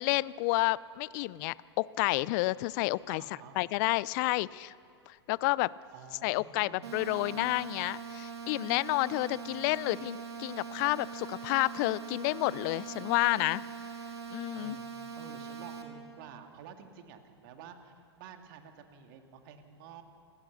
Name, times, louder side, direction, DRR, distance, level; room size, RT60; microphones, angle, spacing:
voice 1, 0.0-3.2 3.6-4.7 5.1-5.7 6.2-13.6 14.3-14.8, left 21 dB, 45° left, 21 dB, 0.5 m, -30 dB
voice 2, 3.1-3.6 5.9-7.6 9.3-9.6 14.5-14.9 15.1-20.0, right 6 dB, 50° right, 5 dB, 2.3 m, -51 dB
sound 1, 6.8-15.8, right 6 dB, 70° right, 2.9 m, -42 dB
27.5 x 15.5 x 6.8 m, 2.4 s
figure-of-eight pair, 100°, 14 cm